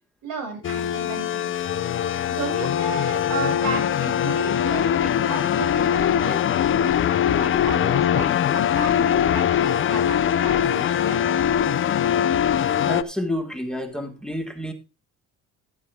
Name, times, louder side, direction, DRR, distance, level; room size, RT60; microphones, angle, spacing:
voice 1, 0.2-1.5 2.3-6.9 7.3-11.4, right 3 dB, 85° right, 2 dB, 6.8 m, -33 dB
sound 1, 0.6-13.0, left 9 dB, 40° left, 0.6 m, -22 dB
voice 2, 12.9-14.7, left 1 dB, ahead, 6 dB, 1.4 m, -29 dB
14.5 x 7.5 x 3.4 m, 0.31 s
cardioid pair, 120°, 31 cm